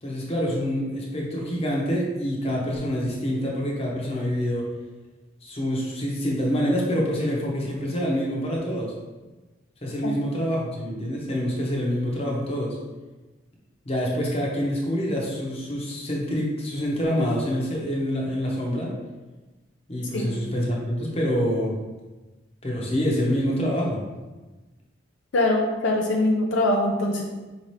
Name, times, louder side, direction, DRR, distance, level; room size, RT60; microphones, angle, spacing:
voice 1, 0.0-4.6 5.4-8.9 9.8-12.8 13.8-18.9 19.9-21.8 22.6-24.0, equal, 35° left, -3 dB, 0.9 m, -26 dB
voice 2, 25.3-27.2, left 1 dB, 75° left, 0 dB, 0.5 m, -22 dB
4.9 x 2.8 x 3.2 m, 1.2 s
head